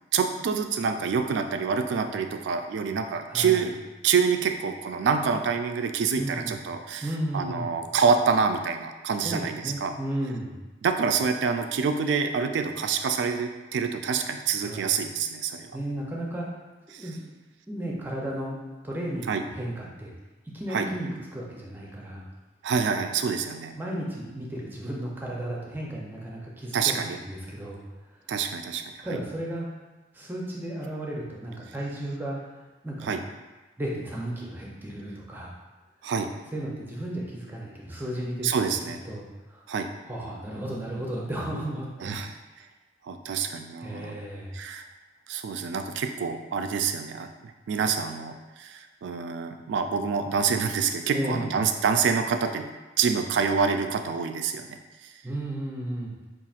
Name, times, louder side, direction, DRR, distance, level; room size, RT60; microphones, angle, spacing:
voice 1, 0.1-3.7 4.0-7.1 7.3-9.9 10.8-15.7 16.9-17.0 19.3-19.4 20.7-20.9 22.6-23.7 26.7-27.2 28.3-29.2 33.0-33.2 36.0-36.3 38.4-39.0 39.7-39.9 42.0-42.3 43.0-44.1 44.5-44.8 45.3-52.7 53.0-55.1, right 6 dB, 70° right, 6 dB, 0.3 m, -27 dB
voice 2, 3.3-3.7 6.2-6.6 7.0-7.7 9.2-10.6 14.6-15.0 15.7-16.5 16.9-17.3 17.7-18.6 18.8-20.1 20.5-22.3 23.7-27.8 29.0-29.7 30.1-32.4 32.8-33.3 33.8-35.5 36.5-38.5 38.9-39.6 40.1-42.3 43.8-44.6 51.1-51.6 55.2-56.2, right 1 dB, 10° right, -3 dB, 0.5 m, -34 dB
5.5 x 2.4 x 2.4 m, 1.2 s
head